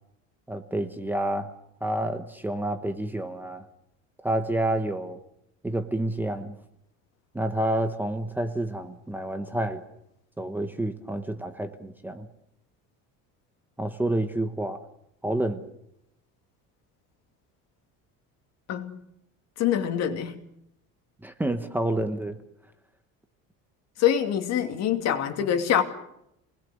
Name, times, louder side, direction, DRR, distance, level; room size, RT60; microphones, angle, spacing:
voice 1, 0.5-1.5 1.8-3.6 4.2-5.2 5.6-6.5 7.3-9.8 10.4-12.3 13.8-14.8 15.2-15.6 21.2-22.4, right 1 dB, 5° right, 1.1 m, -29 dB
voice 2, 19.6-20.4 24.0-25.8, left 9 dB, 50° left, 2.6 m, -25 dB
28.5 x 20.5 x 6.5 m
cardioid pair, 175°, 33 cm